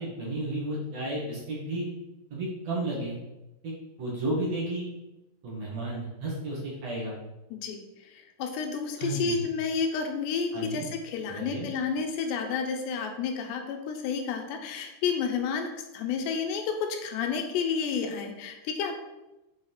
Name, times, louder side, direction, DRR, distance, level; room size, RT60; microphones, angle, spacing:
voice 1, 0.0-1.9 2.3-3.2 3.6-4.9 5.4-7.2 9.0-9.4 10.5-10.9 11.3-11.7, right 1 dB, 45° right, -5 dB, 2.9 m, -32 dB
voice 2, 7.5-18.9, left 5 dB, 90° left, 4 dB, 3.3 m, -31 dB
8.5 x 4.9 x 5.7 m, 0.98 s
omnidirectional pair, 4.8 m